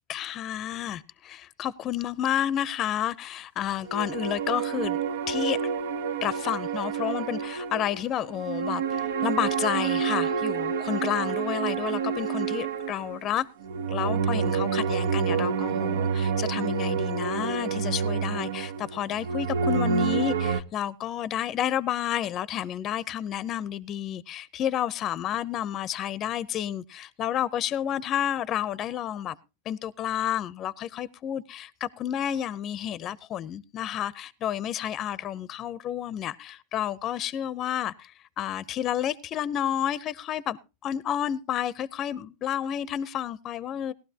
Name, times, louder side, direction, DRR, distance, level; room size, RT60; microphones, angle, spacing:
voice 1, 0.1-5.0 5.3-5.6 6.2-13.5 13.9-29.4 29.7-43.9, left 10 dB, 35° left, 0.5 m, -30 dB
sound 1, 3.9-20.6, right 6 dB, 85° right, 0.9 m, -28 dB
18.0 x 12.5 x 2.8 m
hypercardioid pair, 120°, 0 cm